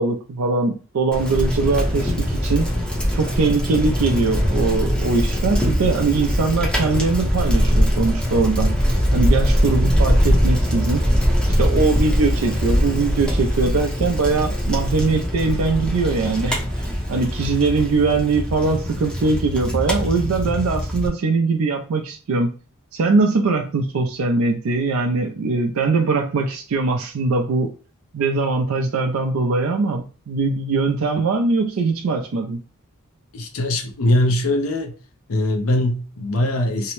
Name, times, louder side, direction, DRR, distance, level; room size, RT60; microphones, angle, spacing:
voice 1, 0.0-2.7 3.1-8.8 9.1-11.1 11.6-22.5 22.9-27.7 28.1-32.6, right 3 dB, 65° right, 0.4 m, -21 dB
Bicycle, 1.1-21.1, equal, 5° left, 0.6 m, -21 dB
voice 2, 33.3-34.9 35.3-36.9, left 1 dB, 70° left, 0.6 m, -21 dB
2.7 x 2.0 x 3.0 m
head